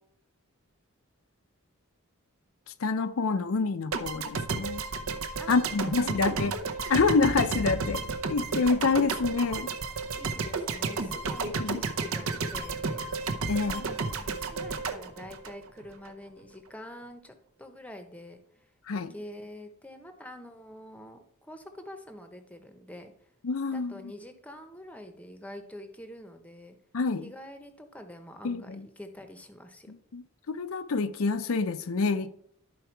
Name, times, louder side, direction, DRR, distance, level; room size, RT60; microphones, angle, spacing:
voice 1, 2.8-4.8 5.5-6.5 6.9-9.7 11.6-11.8 13.5-13.8 18.9-19.1 23.4-23.9 26.9-27.3 28.4-28.8 30.1-32.3, left 4 dB, 70° left, 0.5 m, -27 dB
sound 1, 3.9-16.1, right 4 dB, 70° right, 0.8 m, -32 dB
voice 2, 5.4-6.5 10.1-13.0 13.6-23.1 23.7-26.8 27.2-29.9, left 1 dB, 5° left, 0.8 m, -46 dB
11.5 x 4.7 x 4.5 m
head